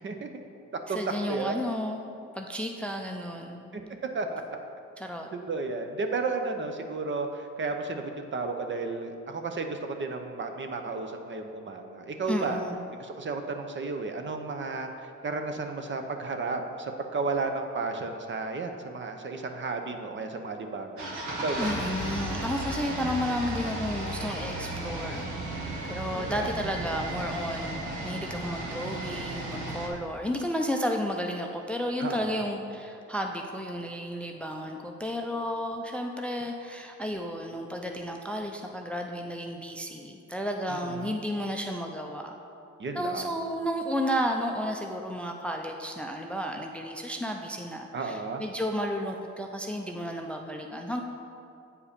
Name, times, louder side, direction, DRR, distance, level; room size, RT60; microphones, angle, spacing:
voice 1, 0.9-3.7 5.0-5.3 12.3-12.9 21.6-25.3 25.8-42.4 42.9-51.0, equal, 5° left, 3 dB, 0.5 m, -32 dB
voice 2, 5.5-12.6 13.0-14.9 15.2-21.0 21.4-21.7 25.5-26.5 32.0-32.4 40.7-41.2 42.8-43.3 47.9-48.4, right 3 dB, 40° right, 5 dB, 0.7 m, -33 dB
sound 1, 21.0-29.9, right 1 dB, 80° right, 1.4 m, -34 dB
8.6 x 4.7 x 5.2 m, 2.5 s
cardioid pair, 90°, 30 cm